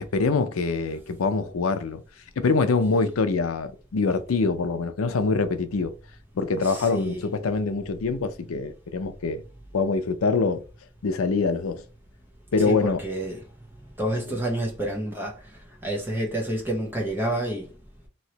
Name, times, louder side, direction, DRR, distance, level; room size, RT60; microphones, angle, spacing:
voice 1, 0.0-2.0 2.4-5.9 6.3-9.4 9.7-10.6 11.0-11.8 12.5-13.0, left 4 dB, 90° left, 0.5 m, -24 dB
voice 2, 6.6-7.2 12.6-13.4 14.0-15.3 15.8-17.7, right 1 dB, 10° right, 0.9 m, -29 dB
3.1 x 2.7 x 2.8 m
head